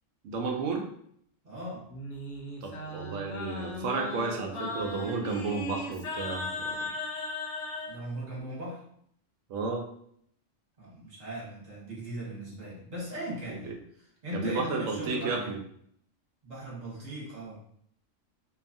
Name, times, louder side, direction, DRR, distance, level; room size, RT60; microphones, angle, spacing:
voice 1, 0.2-0.8 2.6-6.8 9.5-9.9 13.6-13.7 14.3-15.6, right 4 dB, 80° right, 2 dB, 0.9 m, -32 dB
voice 2, 1.4-1.9 7.9-8.8 10.8-15.5 16.4-17.6, right 1 dB, 35° right, -6 dB, 1.1 m, -39 dB
Singing, 1.9-8.0, left 2 dB, 75° left, 0.9 m, -37 dB
2.7 x 2.3 x 2.6 m, 0.66 s
omnidirectional pair, 1.3 m